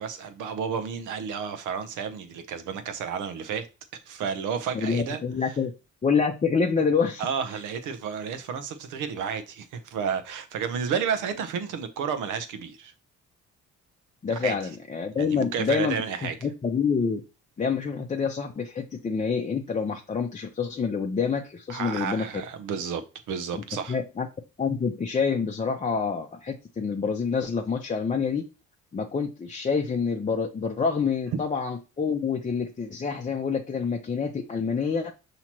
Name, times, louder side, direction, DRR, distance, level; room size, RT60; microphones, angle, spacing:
voice 1, 0.0-3.7 4.1-5.2 7.2-12.9 14.3-14.5 15.2-16.4 21.7-23.0 23.3-24.0, right 7 dB, 90° right, 0.8 m, -31 dB
voice 2, 4.7-5.7 6.0-7.3 14.2-16.0 16.4-17.2 17.6-22.3 23.5-23.6 23.9-24.3 24.6-28.4 28.9-35.1, left 5 dB, 25° left, 0.6 m, -27 dB
5.8 x 2.9 x 2.9 m
cardioid pair, 90°, 30 cm